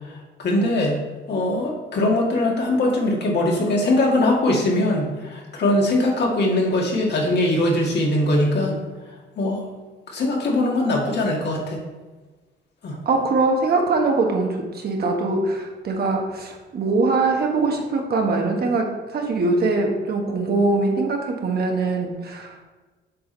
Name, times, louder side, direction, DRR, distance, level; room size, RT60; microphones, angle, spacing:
voice 1, 0.4-1.0 1.3-8.8 9.4-9.6 10.1-11.8 12.8-13.0, left 1 dB, 60° left, -1 dB, 1.9 m, -21 dB
voice 2, 13.0-22.6, right 3 dB, 50° right, 2 dB, 1.4 m, -22 dB
7.7 x 5.1 x 3.9 m, 1.3 s
cardioid pair, 90°, 20 cm